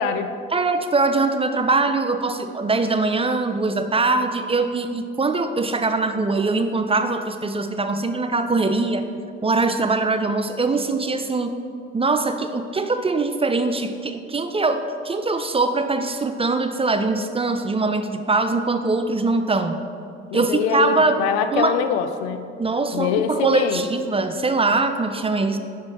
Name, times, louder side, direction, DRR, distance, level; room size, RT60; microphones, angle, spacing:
voice 1, 0.0-0.3 20.3-22.4 22.9-23.8, left 7 dB, 75° left, 9 dB, 0.5 m, -23 dB
voice 2, 0.5-9.1 9.4-11.5 11.9-19.8 20.3-21.2 21.5-21.7 22.6-25.6, right 3 dB, 20° right, 8 dB, 0.4 m, -22 dB
5.4 x 5.2 x 4.9 m, 2.4 s
hypercardioid pair, 45°, 32 cm